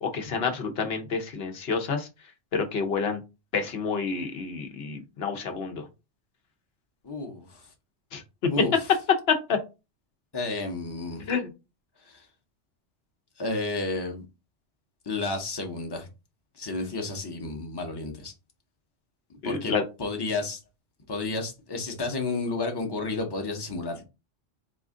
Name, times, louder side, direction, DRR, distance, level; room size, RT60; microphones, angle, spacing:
voice 1, 0.0-2.1 2.5-3.2 3.5-5.8 8.1-8.5 9.3-9.6 11.3-11.5 19.4-19.8, left 5 dB, 60° left, 5 dB, 1.0 m, -28 dB
voice 2, 7.0-7.6 8.5-8.7 10.3-11.3 12.0-12.2 13.4-14.3 15.1-16.1 16.6-18.3 19.4-20.6 21.1-24.0, left 3 dB, 25° left, 3 dB, 0.8 m, -31 dB
4.2 x 2.5 x 3.6 m, 0.27 s
omnidirectional pair, 1.2 m